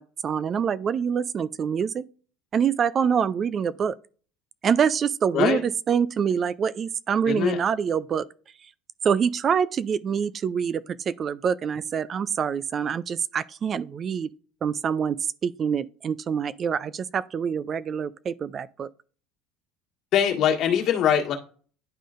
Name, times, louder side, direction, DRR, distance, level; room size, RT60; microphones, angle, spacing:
voice 1, 0.0-2.0 2.5-3.9 4.6-8.2 9.0-14.3 14.6-18.9, right 7 dB, 40° right, 0.3 m, -25 dB
voice 2, 7.3-7.6 20.1-21.3, left 9 dB, 55° left, 1.7 m, -22 dB
11.0 x 3.7 x 2.5 m
hypercardioid pair, 85°, 0 cm